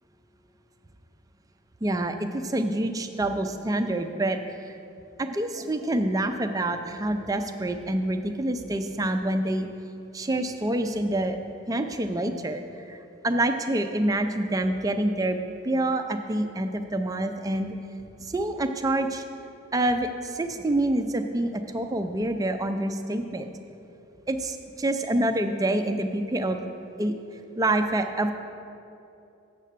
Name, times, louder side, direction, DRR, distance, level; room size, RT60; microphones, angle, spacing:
voice 1, 1.8-4.4 4.6-4.7 5.2-9.7 10.1-11.4 11.7-13.0 13.2-17.7 18.2-19.2 19.7-23.5 24.3-26.7 27.0-27.1 27.6-28.3, right 1 dB, 15° right, 6 dB, 0.4 m, -27 dB
7.6 x 7.5 x 6.6 m, 2.8 s
head